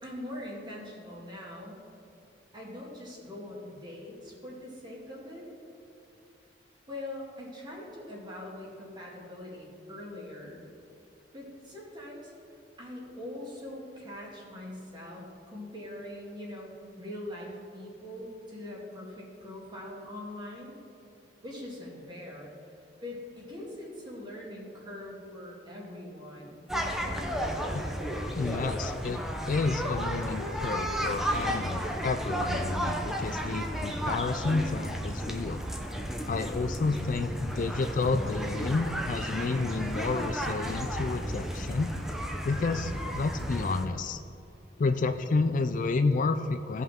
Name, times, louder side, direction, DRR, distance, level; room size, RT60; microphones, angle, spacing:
voice 1, 0.0-1.8 2.5-5.5 6.9-10.6 11.3-12.3 12.8-20.7 21.4-22.5 23.0-26.6 26.9-27.3, left 1 dB, 25° right, -4 dB, 2.2 m, -42 dB
sound 1, 26.7-43.9, equal, ahead, 0.7 m, -33 dB
voice 2, 28.4-35.6 36.3-41.9 42.4-44.2 44.8-46.8, left 3 dB, 45° left, 8 dB, 0.4 m, -30 dB
16.5 x 5.5 x 3.6 m, 2.7 s
head